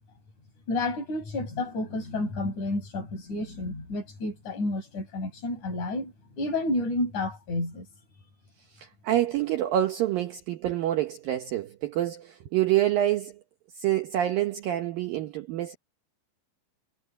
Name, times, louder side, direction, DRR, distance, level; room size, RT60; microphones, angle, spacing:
voice 1, 0.7-7.9, left 2 dB, 35° left, 8.0 m, -30 dB
voice 2, 8.8-13.3 13.8-15.8, right 12 dB, 85° right, 2.0 m, -27 dB
omnidirectional pair, 5.7 m